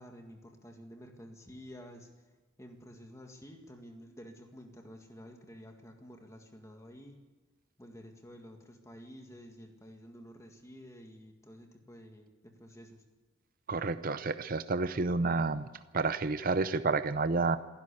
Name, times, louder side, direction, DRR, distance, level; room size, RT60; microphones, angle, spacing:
voice 1, 0.0-2.1 2.6-7.2 7.8-13.0, equal, 15° left, 4 dB, 1.8 m, -51 dB
voice 2, 13.7-15.6 15.9-17.6, right 3 dB, 45° right, 12 dB, 0.6 m, -30 dB
27.0 x 11.5 x 8.4 m, 1.2 s
head